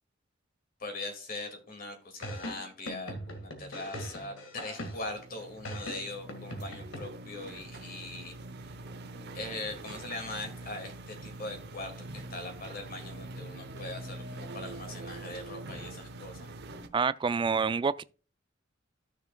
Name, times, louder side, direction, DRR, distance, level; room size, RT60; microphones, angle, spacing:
voice 1, 0.8-8.3 9.3-16.5, left 2 dB, 50° left, 2.2 m, -41 dB
sound 1, 2.2-5.2 5.6-7.0, equal, 75° left, 1.8 m, -40 dB
sound 2, 4.9-16.9, right 2 dB, 60° right, 0.8 m, -44 dB
voice 2, 16.9-18.0, right 5 dB, 25° right, 0.3 m, -27 dB
13.5 x 6.5 x 2.3 m
head